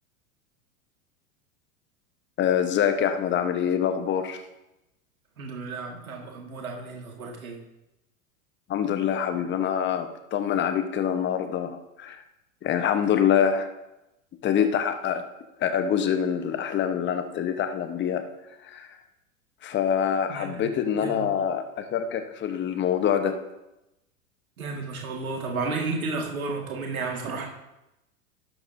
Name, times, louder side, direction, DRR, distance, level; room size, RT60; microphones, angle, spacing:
voice 1, 2.4-4.4 8.7-12.2 12.6-13.7 14.4-15.2 15.6-18.2 18.6-18.9 19.6-23.4, left 8 dB, 25° left, 8 dB, 1.0 m, -25 dB
voice 2, 5.4-7.6 20.3-20.7 20.9-21.3 24.6-27.5, right 3 dB, 85° right, 0 dB, 2.0 m, -32 dB
12.5 x 10.0 x 2.7 m, 0.94 s
hypercardioid pair, 95°, 41 cm